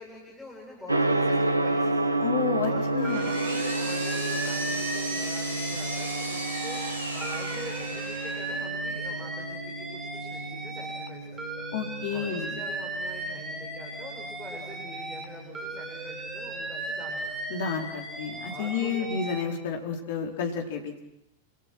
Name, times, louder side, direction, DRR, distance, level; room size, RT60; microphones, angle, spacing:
voice 1, 0.0-2.2 2.6-6.8 7.1-11.6 12.1-17.3 18.5-19.1, left 2 dB, 5° left, -2 dB, 7.7 m, -45 dB
Gong, 0.9-19.8, right 2 dB, 85° right, 1.3 m, -32 dB
voice 2, 2.2-3.3 11.7-12.6 17.5-21.0, left 6 dB, 55° left, 2 dB, 4.5 m, -31 dB
Power tool, 2.6-8.7, right 1 dB, 85° left, 6.2 m, -36 dB
Alarm, 3.0-6.9 7.2-11.1 11.4-15.3 15.5-19.4, right 2 dB, 15° right, 3.7 m, -37 dB
29.0 x 27.5 x 6.4 m, 0.84 s
figure-of-eight pair, 90°, 0 cm